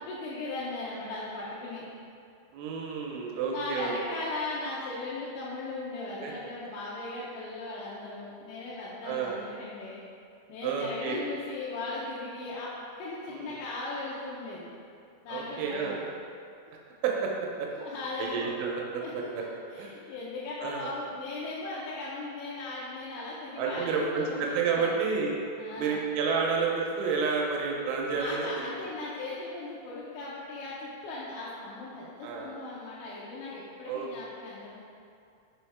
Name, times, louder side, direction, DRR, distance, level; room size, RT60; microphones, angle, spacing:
voice 1, 0.0-1.9 3.1-10.0 10.5-14.7 15.2-16.1 17.8-18.5 19.0-19.1 19.7-25.0 25.6-26.0 28.1-34.8, left 2 dB, 80° left, -7 dB, 2.9 m, -38 dB
voice 2, 2.5-3.9 6.2-6.3 9.0-9.4 10.6-11.2 13.3-13.6 15.3-16.0 17.0-17.7 18.2-19.4 19.8-19.9 20.6-20.9 23.6-25.4 25.8-28.7 32.2-32.5 33.9-34.1, right 5 dB, 85° right, -1 dB, 2.9 m, -30 dB
6.2 x 4.9 x 3.4 m, 2.4 s
omnidirectional pair, 5.5 m